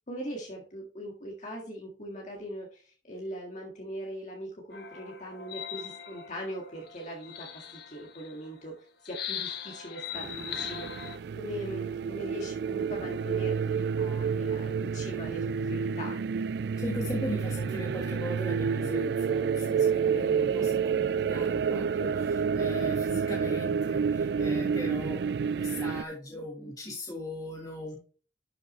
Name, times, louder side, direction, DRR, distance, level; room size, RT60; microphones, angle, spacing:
voice 1, 0.1-8.7 9.0-16.2, equal, 40° left, -1 dB, 1.9 m, -41 dB
sound 1, 4.7-8.4 9.0-11.2, left 9 dB, 60° left, 1.2 m, -40 dB
sound 2, 10.1-26.0, right 6 dB, 65° right, 0.3 m, -29 dB
voice 2, 16.8-28.0, equal, 20° left, -2 dB, 1.7 m, -38 dB
11.0 x 6.3 x 3.2 m, 0.40 s
head